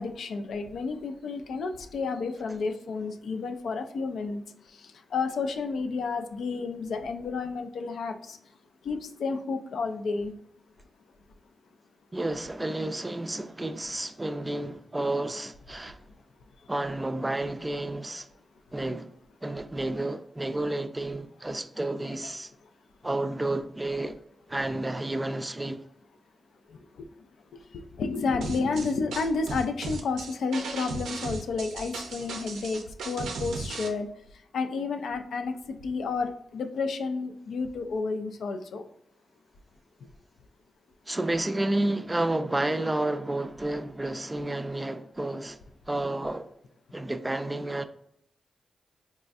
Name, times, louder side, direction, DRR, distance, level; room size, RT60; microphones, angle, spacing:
voice 1, 0.0-4.4 5.1-8.4 8.8-10.3 27.0-27.1 27.7-34.1 34.5-38.9, left 4 dB, 75° left, 0.3 m, -31 dB
voice 2, 12.1-16.0 16.7-18.3 18.7-19.1 19.4-22.5 23.0-24.2 24.5-25.8 41.1-45.6 45.9-46.5 46.9-47.9, right 2 dB, 25° right, 0.4 m, -31 dB
sound 1, 28.4-33.9, right 3 dB, 85° right, 0.4 m, -36 dB
4.1 x 2.3 x 2.5 m
supercardioid pair, 45°, 0 cm